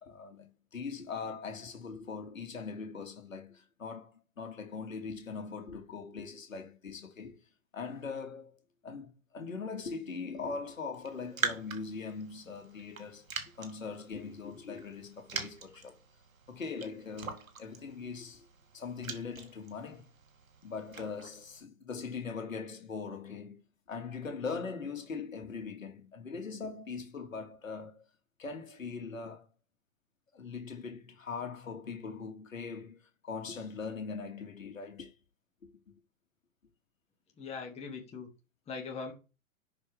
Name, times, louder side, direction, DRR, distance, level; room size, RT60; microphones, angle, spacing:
voice 1, 0.0-7.4 7.7-13.3 13.6-16.0 16.5-18.4 18.7-20.1 20.6-23.6 23.9-28.1 28.4-29.5 30.3-35.1, left 5 dB, 75° left, 2.3 m, -41 dB
Raindrop, 10.9-21.6, right 5 dB, 75° right, 1.9 m, -43 dB
voice 2, 37.4-38.3 38.7-39.1, left 5 dB, 15° left, 2.2 m, -40 dB
11.0 x 5.2 x 3.5 m
figure-of-eight pair, 120°, 40 cm